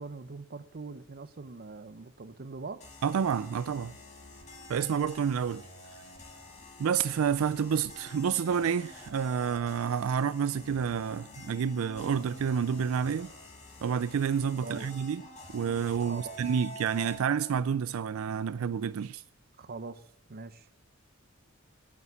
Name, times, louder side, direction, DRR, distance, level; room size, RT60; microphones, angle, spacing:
voice 1, 0.0-2.8 14.6-14.9 16.0-16.4 19.6-20.0 20.3-20.7, right 3 dB, 50° right, 0.7 m, -42 dB
sound 1, 2.8-17.6, left 1 dB, 35° left, 2.3 m, -48 dB
voice 2, 3.0-3.9 4.7-5.6 6.8-13.3 13.8-15.2 15.5-19.2, right 7 dB, 80° right, 0.4 m, -29 dB
9.3 x 8.5 x 8.1 m
head